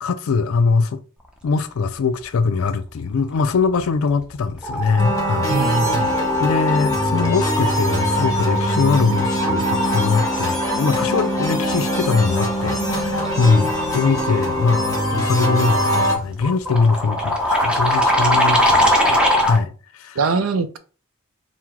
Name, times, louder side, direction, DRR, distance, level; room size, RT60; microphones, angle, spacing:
voice 1, 0.0-1.0 1.4-5.5 6.4-20.2, left 4 dB, 70° left, 0.4 m, -21 dB
sound 1, 3.8-4.1 4.4-19.6, left 1 dB, 5° right, 0.7 m, -23 dB
sound 2, 5.0-16.1, equal, 15° left, 1.7 m, -23 dB
voice 2, 5.5-6.1 20.2-20.8, right 3 dB, 80° right, 0.5 m, -21 dB
sound 3, 12.7-17.3, equal, 20° right, 1.1 m, -42 dB
4.5 x 2.1 x 3.6 m
head